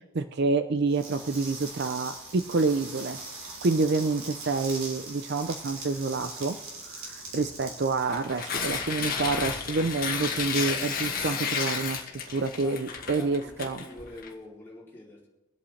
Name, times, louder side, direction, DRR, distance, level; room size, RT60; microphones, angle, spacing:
voice 1, 0.1-3.2 3.6-6.6 6.8-13.8, right 3 dB, 50° right, 0.5 m, -28 dB
sound 1, 0.9-9.9, right 2 dB, 85° right, 2.9 m, -42 dB
Tearing, 8.0-14.3, left 6 dB, 40° left, 1.5 m, -32 dB
voice 2, 12.6-15.3, left 2 dB, 10° left, 3.1 m, -45 dB
24.5 x 8.4 x 3.3 m
head